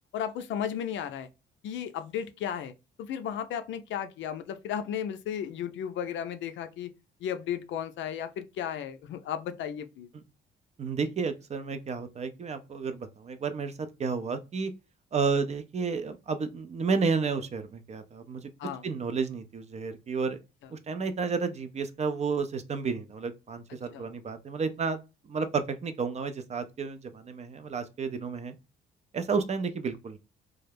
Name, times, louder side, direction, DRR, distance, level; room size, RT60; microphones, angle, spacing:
voice 1, 0.1-1.3 1.6-2.7 3.0-6.9 7.2-10.1 18.6-18.9 23.9-24.1, left 9 dB, 70° left, 0.4 m, -34 dB
voice 2, 10.8-13.7 14.0-14.7 15.1-18.4 18.8-20.4 20.7-25.0 25.3-28.6 29.1-30.2, right 5 dB, 35° right, 0.4 m, -31 dB
2.3 x 2.0 x 3.2 m
cardioid pair, 90°, 20 cm